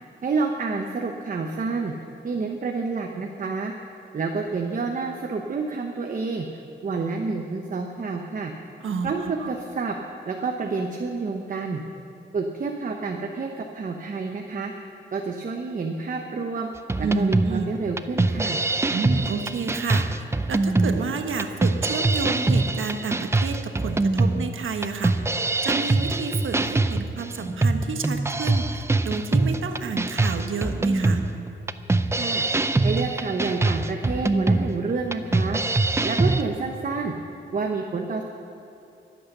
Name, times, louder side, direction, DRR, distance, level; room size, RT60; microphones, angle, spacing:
voice 1, 0.2-1.9 2.2-3.7 4.1-8.5 9.0-9.9 10.3-11.8 12.3-14.7 15.1-16.7 17.0-18.6 32.1-32.4 32.8-35.6 36.0-37.1 37.5-38.2, right 4 dB, 40° right, 3 dB, 0.9 m, -29 dB
sound 1, 16.9-36.4, right 2 dB, 15° right, 0.4 m, -23 dB
voice 2, 17.0-17.7 18.9-20.1 20.5-25.1 25.6-31.2, right 5 dB, 80° right, 5 dB, 1.3 m, -30 dB
23.0 x 8.6 x 6.7 m, 2.7 s
wide cardioid pair, 165°, 20 cm